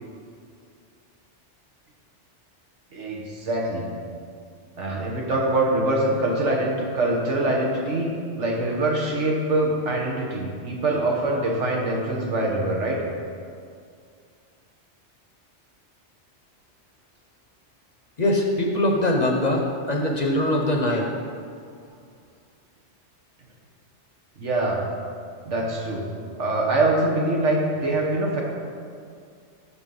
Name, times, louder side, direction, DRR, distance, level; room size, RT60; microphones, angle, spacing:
voice 1, 2.9-3.9 4.8-8.1 8.4-13.0 24.4-24.8 25.4-26.1 26.4-28.4, right 2 dB, 85° right, -1 dB, 1.6 m, -24 dB
voice 2, 18.2-21.1, left 1 dB, 40° left, 1 dB, 0.9 m, -22 dB
11.5 x 4.4 x 5.4 m, 2.3 s
omnidirectional pair, 1.2 m